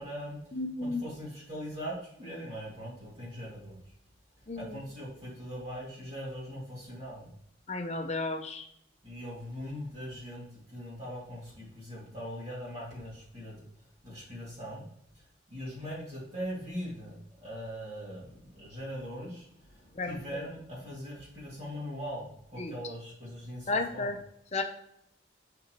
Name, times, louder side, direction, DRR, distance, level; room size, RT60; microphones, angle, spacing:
voice 1, 0.0-0.4 0.8-3.8 4.6-7.4 9.0-13.6 14.0-14.8 15.5-24.1, equal, 35° right, -7 dB, 2.4 m, -41 dB
voice 2, 0.5-1.0 4.5-4.8 7.7-8.6 19.9-20.4 22.6-22.7 23.7-24.2 24.5-24.6, left 3 dB, 35° left, 5 dB, 0.7 m, -33 dB
6.1 x 5.6 x 3.0 m, 0.72 s
head